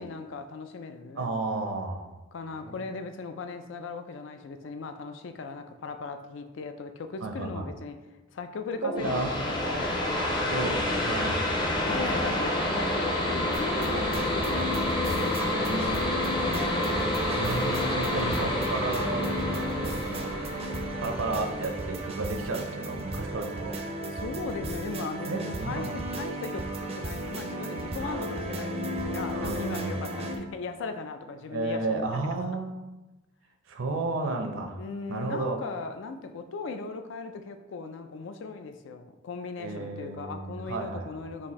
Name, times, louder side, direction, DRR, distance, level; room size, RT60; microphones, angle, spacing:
voice 1, 0.0-1.3 2.3-8.0 8.3-10.2 11.8-16.9 24.1-32.3 34.8-41.5, left 4 dB, 65° left, 8 dB, 0.4 m, -38 dB
voice 2, 1.2-2.0 2.5-2.7 7.2-7.7 8.8-9.3 10.5-11.4 15.7-15.9 17.4-20.3 21.0-23.8 25.3-25.9 28.0-28.3 29.3-30.0 31.5-32.8 33.7-34.8 35.1-35.6 39.6-41.2, right 2 dB, 75° right, 4 dB, 0.6 m, -32 dB
sound 1, 9.0-22.3, left 1 dB, 25° left, 0.6 m, -29 dB
sound 2, 13.5-30.4, right 1 dB, 30° right, 0.5 m, -34 dB
sound 3, 14.1-21.7, equal, 90° left, 1.3 m, -46 dB
4.2 x 2.6 x 4.1 m, 1.1 s
head